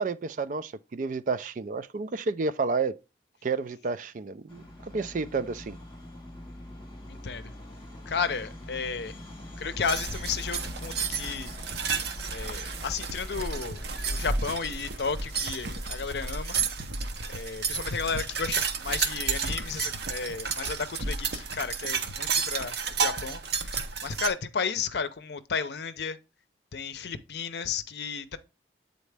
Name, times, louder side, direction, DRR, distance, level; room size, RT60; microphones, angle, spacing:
voice 1, 0.0-3.0 3.4-5.8, right 4 dB, 45° right, 0.4 m, -30 dB
sound 1, 4.5-16.0, left 1 dB, 30° left, 1.3 m, -43 dB
voice 2, 7.1-7.5 8.1-9.1 9.6-11.5 12.3-16.6 17.3-26.2 26.7-28.4, left 5 dB, 70° left, 0.6 m, -33 dB
sound 2, 9.8-24.3, right 5 dB, 70° right, 0.8 m, -32 dB
8.2 x 4.0 x 3.3 m
head